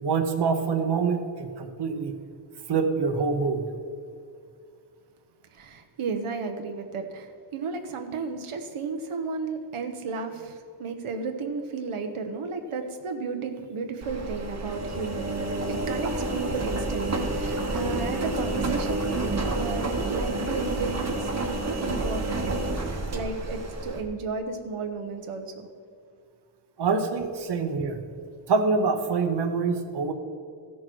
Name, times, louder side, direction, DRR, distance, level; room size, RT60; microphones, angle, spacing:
voice 1, 0.0-2.1 2.7-3.7 26.8-28.0 28.5-30.1, right 4 dB, 55° right, 5 dB, 0.9 m, -25 dB
voice 2, 5.5-15.3 15.7-22.8 23.1-25.7, right 4 dB, 90° right, 5 dB, 1.0 m, -33 dB
Engine, 14.0-24.0, right 2 dB, 35° right, 1.1 m, -29 dB
15.5 x 6.5 x 4.6 m, 2.2 s
wide cardioid pair, 145°, 49 cm